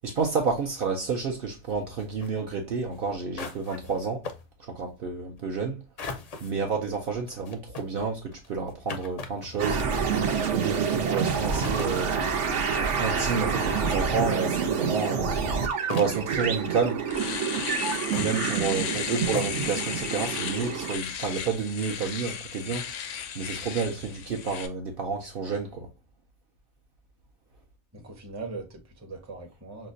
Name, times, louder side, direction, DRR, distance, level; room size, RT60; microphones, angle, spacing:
voice 1, 0.0-4.3 4.6-5.8 6.4-9.8 10.2-12.2 13.0-15.4 15.9-17.1 18.1-22.9 23.4-25.9, right 5 dB, 60° right, 0.7 m, -30 dB
sound 1, 2.0-2.3 2.9-3.0 3.4-4.0 4.2-4.4 6.0-6.5 7.3-10.2 11.0-11.1 11.3-11.9 13.0-13.3 13.8-13.9 14.2-14.8 15.4-15.5 15.9-17.0 17.7-18.3 19.0-19.1 19.3-19.7, left 4 dB, 50° left, 0.5 m, -39 dB
sound 2, 9.6-21.0, right 6 dB, 80° right, 1.1 m, -28 dB
Domestic sounds home sounds, 16.4-16.5 16.9-24.7, left 8 dB, 90° left, 0.9 m, -35 dB
voice 2, 27.9-29.9, right 3 dB, 15° right, 0.6 m, -40 dB
5.3 x 2.1 x 2.5 m
omnidirectional pair, 1.2 m